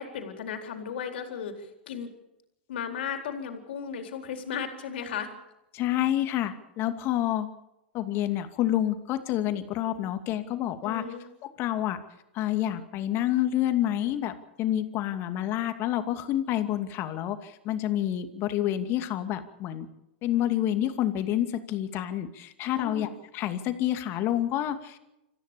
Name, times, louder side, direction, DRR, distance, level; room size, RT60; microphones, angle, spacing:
voice 1, 0.0-2.1 2.7-5.3 10.8-11.2 22.7-23.1, left 7 dB, 70° left, 5 dB, 4.1 m, -35 dB
voice 2, 5.7-7.5 7.9-11.0 11.6-12.0 12.3-19.9 20.2-23.1 23.3-25.0, left 12 dB, 45° left, 8 dB, 2.5 m, -28 dB
27.0 x 15.0 x 7.0 m, 0.89 s
hypercardioid pair, 105°, 6 cm